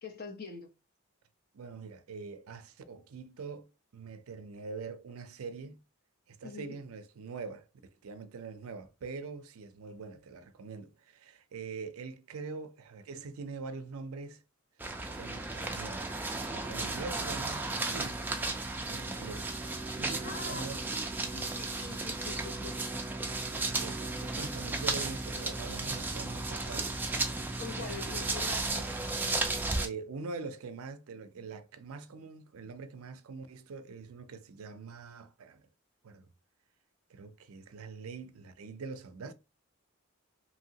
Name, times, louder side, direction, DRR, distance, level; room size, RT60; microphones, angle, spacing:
voice 1, 0.0-0.7 6.4-6.7 20.2-21.1 21.3-22.7 27.6-29.1, left 5 dB, 45° left, 0.7 m, -44 dB
voice 2, 1.5-5.8 6.3-7.7 8.0-14.4 15.2-16.2 16.5-18.2 18.9-19.5 20.0-20.9 23.4-26.9 27.6-28.1 29.8-35.7 36.0-36.3 37.1-39.3, right 4 dB, 75° right, 0.4 m, -44 dB
sound 1, 14.8-29.9, right 2 dB, 10° right, 0.3 m, -34 dB
2.9 x 2.8 x 2.8 m
head